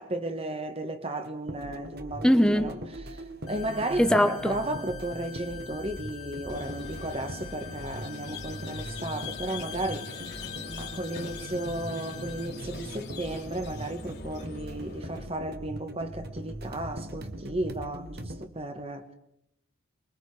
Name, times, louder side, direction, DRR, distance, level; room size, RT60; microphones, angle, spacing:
voice 1, 0.0-2.8 3.0-3.2 3.5-10.4 10.8-19.1, right 1 dB, 30° right, 1.5 m, -34 dB
sound 1, 1.2-18.5, right 1 dB, 50° right, 1.6 m, -41 dB
voice 2, 2.2-2.8 4.0-4.5, equal, 5° left, 1.0 m, -21 dB
sound 2, 3.5-12.5, left 9 dB, 75° left, 3.0 m, -46 dB
Squeak, 6.5-15.3, left 4 dB, 50° left, 2.8 m, -42 dB
28.5 x 22.5 x 5.0 m
head